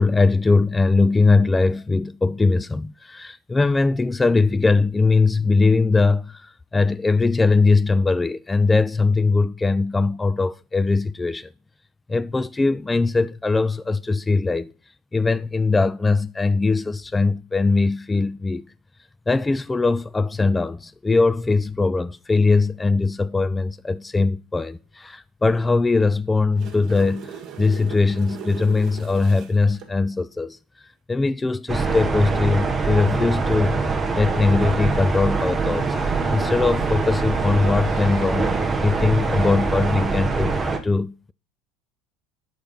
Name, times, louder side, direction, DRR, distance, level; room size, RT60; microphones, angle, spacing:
voice 1, 0.0-11.5 12.1-14.7 15.1-18.6 19.3-30.6 31.1-36.0 36.3-38.5 38.8-41.3, left 3 dB, 15° left, 0.3 m, -21 dB
sound 1, 26.3-29.9 33.7-33.9, right 8 dB, 50° right, 1.4 m, -40 dB
sound 2, 31.7-40.8, right 4 dB, 25° right, 1.0 m, -23 dB
Male speech man speaking / Child speech kid speaking / Chatter, 34.3-40.3, left 2 dB, 40° left, 2.0 m, -39 dB
6.2 x 4.9 x 5.4 m
hypercardioid pair, 70°, 0 cm